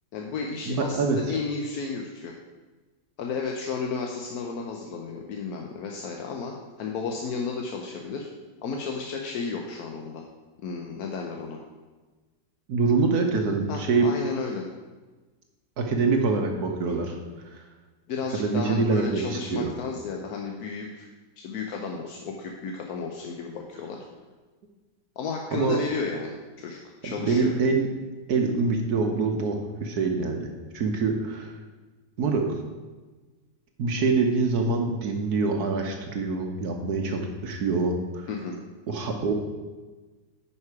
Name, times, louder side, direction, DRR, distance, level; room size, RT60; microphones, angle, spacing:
voice 1, 0.1-2.4 3.2-8.3 8.6-10.2 10.6-11.6 13.7-14.6 16.8-16.9 18.1-21.1 21.4-24.0 25.2-27.5 38.3-38.6, left 5 dB, 65° left, 1 dB, 1.1 m, -33 dB
voice 2, 0.7-1.4 12.7-14.1 15.8-17.2 17.5-17.6 18.3-19.7 25.5-25.8 27.0-27.9 28.3-31.6 32.2-32.6 33.8-38.3 38.9-39.3, right 4 dB, 60° right, 3 dB, 1.2 m, -25 dB
9.4 x 5.8 x 4.8 m, 1.3 s
omnidirectional pair, 2.1 m